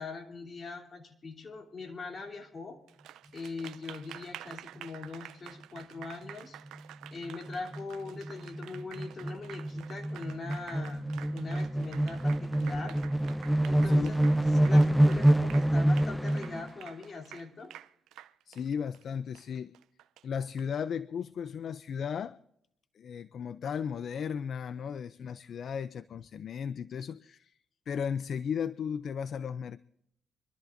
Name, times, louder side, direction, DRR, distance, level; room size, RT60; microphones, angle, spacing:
voice 1, 0.0-2.8 3.3-6.6 7.1-13.0 13.6-14.2 14.6-17.7, left 3 dB, 40° left, 3.0 m, -41 dB
Applause, 2.9-20.6, right 12 dB, 85° right, 0.5 m, -49 dB
sound 1, 6.0-6.3 6.7-6.8 7.0-16.7, right 1 dB, 5° right, 0.4 m, -27 dB
voice 2, 18.5-19.7 20.2-22.4 23.0-27.6 27.9-29.8, left 7 dB, 60° left, 0.4 m, -35 dB
25.0 x 13.0 x 2.6 m
cardioid pair, 90°, 0 cm